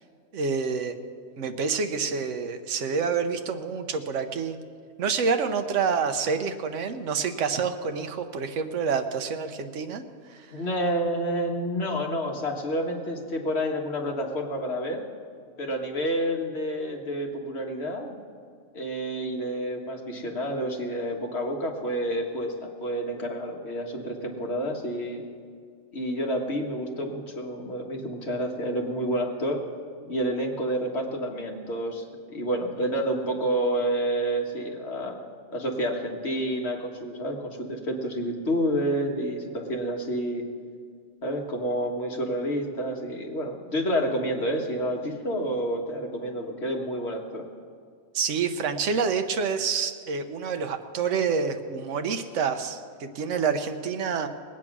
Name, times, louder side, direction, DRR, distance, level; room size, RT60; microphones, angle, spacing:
voice 1, 0.3-1.0 1.4-4.6 5.0-10.0 10.3-10.5 48.1-54.3, right 5 dB, 75° right, 6 dB, 1.2 m, -27 dB
voice 2, 10.5-15.0 15.6-18.2 18.7-25.2 25.9-29.6 30.1-35.2 35.5-40.4 41.2-47.4, equal, 55° left, 1 dB, 1.8 m, -29 dB
20.5 x 8.9 x 6.0 m, 2.1 s
omnidirectional pair, 1.3 m